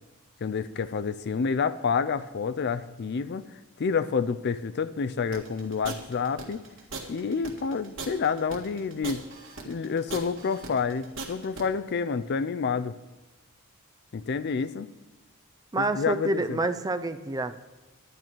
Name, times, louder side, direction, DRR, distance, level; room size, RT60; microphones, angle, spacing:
voice 1, 0.4-3.5 3.8-6.6 7.1-9.2 9.7-12.9 14.1-14.9 15.8-16.6, left 5 dB, 50° left, 14 dB, 0.4 m, -28 dB
sound 1, 5.3-11.6, right 3 dB, 60° right, 1.8 m, -39 dB
voice 2, 15.7-17.7, right 2 dB, 15° right, 10 dB, 0.4 m, -28 dB
11.0 x 10.5 x 4.5 m, 1.1 s
head